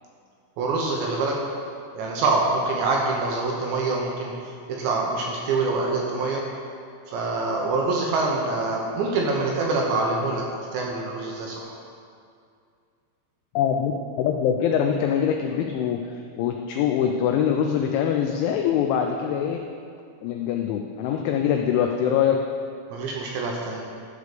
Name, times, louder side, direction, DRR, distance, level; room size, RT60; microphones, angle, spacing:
voice 1, 0.6-1.4 2.0-4.3 4.7-6.4 7.1-10.4 10.7-11.8 22.9-23.8, right 3 dB, 75° right, -1 dB, 2.9 m, -25 dB
voice 2, 13.6-13.9 14.2-19.6 20.2-22.4, left 8 dB, 85° left, 3 dB, 2.7 m, -23 dB
12.0 x 4.8 x 6.7 m, 2.3 s
omnidirectional pair, 5.9 m